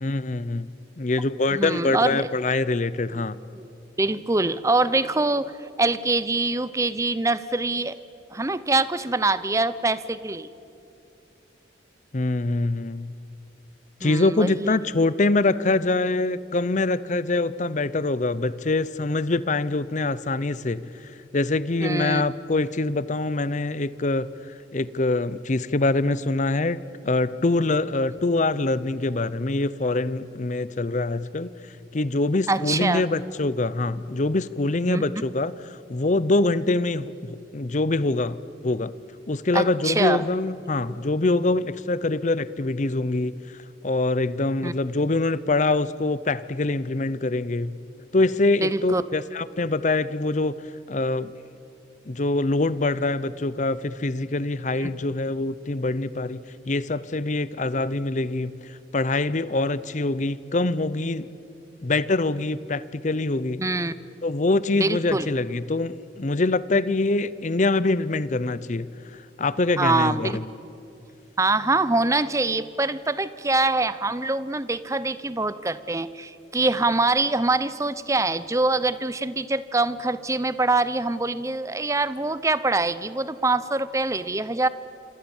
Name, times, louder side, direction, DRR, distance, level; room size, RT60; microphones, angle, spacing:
voice 1, 0.0-3.4 12.1-13.1 14.0-24.3 24.7-26.8 27.0-31.5 31.9-35.5 35.9-38.4 38.6-38.9 39.3-43.4 43.8-47.8 48.1-50.6 50.9-51.3 52.1-61.3 61.8-63.6 64.2-68.9 69.4-70.4, left 2 dB, 40° left, 16 dB, 0.7 m, -24 dB
voice 2, 1.5-2.2 3.1-3.2 3.5-3.7 4.0-5.5 5.8-8.0 8.3-10.5 14.0-14.8 21.8-22.2 32.5-33.0 34.9-35.1 39.5-40.2 44.6-44.7 48.6-49.0 54.8-54.9 63.6-63.9 64.8-65.3 69.8-70.4 71.4-84.7, right 2 dB, 15° right, 15 dB, 0.7 m, -24 dB
27.0 x 26.5 x 7.2 m, 2.7 s
head